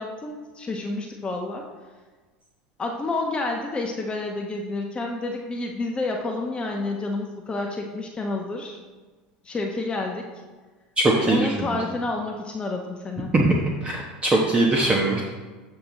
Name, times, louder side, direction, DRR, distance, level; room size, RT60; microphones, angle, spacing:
voice 1, 0.0-1.7 2.8-8.8 9.4-10.3 11.2-13.3, left 2 dB, 20° left, 1 dB, 0.9 m, -29 dB
voice 2, 11.0-11.8 13.3-13.6 13.8-15.2, right 2 dB, 25° right, -1 dB, 1.0 m, -21 dB
7.8 x 5.9 x 3.9 m, 1.3 s
hypercardioid pair, 95°, 5 cm